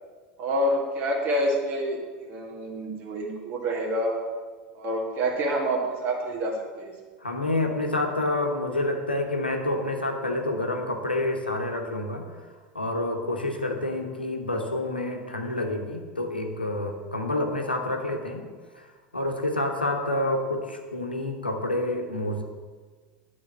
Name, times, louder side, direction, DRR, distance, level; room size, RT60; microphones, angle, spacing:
voice 1, 0.4-4.2 4.7-6.9, right 1 dB, 40° right, 0 dB, 1.8 m, -27 dB
voice 2, 7.2-12.3 12.7-18.4 18.7-18.9 19.1-22.4, left 2 dB, 85° left, 3 dB, 0.9 m, -28 dB
10.5 x 3.8 x 6.3 m, 1.5 s
figure-of-eight pair, 80°, 5 cm